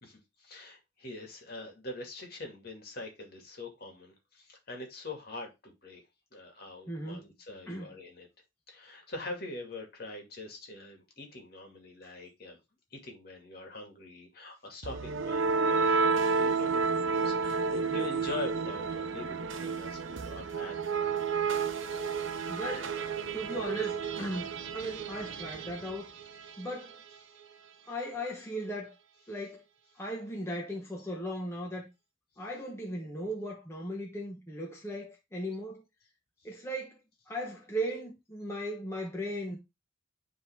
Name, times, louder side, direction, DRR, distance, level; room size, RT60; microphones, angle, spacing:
voice 1, 0.0-6.0 6.3-8.3 8.7-12.6 12.9-20.8 26.5-26.7, left 2 dB, 50° left, 2.3 m, -43 dB
voice 2, 6.9-7.3 7.7-8.0 22.5-23.0 23.3-26.1 26.6-27.0 27.8-28.9 29.3-29.6 30.0-31.9 32.4-35.8 36.4-37.0 37.3-39.6, equal, 15° left, 1.1 m, -37 dB
sound 1, 14.8-26.7, right 4 dB, 80° right, 0.8 m, -31 dB
9.6 x 3.6 x 3.5 m
head